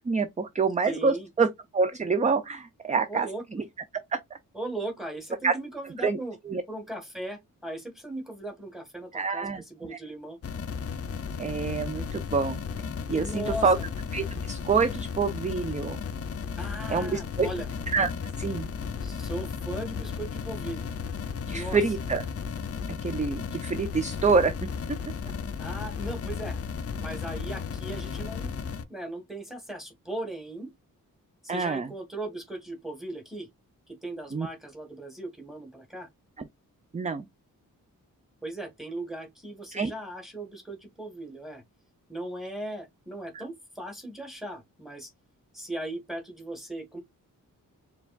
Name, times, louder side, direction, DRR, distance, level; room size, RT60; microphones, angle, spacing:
voice 1, 0.1-3.6 4.1-4.2 5.4-5.6 6.0-6.2 6.5-6.6 9.1-9.6 9.9-10.0 11.4-12.6 13.1-13.8 14.1-16.0 16.9-17.5 17.9-18.1 18.4-18.7 21.5-22.2 23.0-24.5 31.5-31.9 34.3-34.5 36.4-36.5 36.9-37.3 39.7-39.9 43.3-43.4, right 4 dB, 20° right, 0.4 m, -26 dB
voice 2, 0.8-1.3 3.1-3.4 4.5-6.4 6.7-10.4 13.2-13.9 16.6-17.7 19.0-20.9 21.5-21.8 25.6-26.6 27.0-30.7 31.4-33.5 33.9-36.1 38.4-41.6 42.1-45.1 45.5-47.0, right 1 dB, ahead, 1.5 m, -38 dB
sound 1, 10.4-28.8, left 6 dB, 45° left, 0.5 m, -34 dB
4.7 x 3.4 x 2.3 m
wide cardioid pair, 155°, 33 cm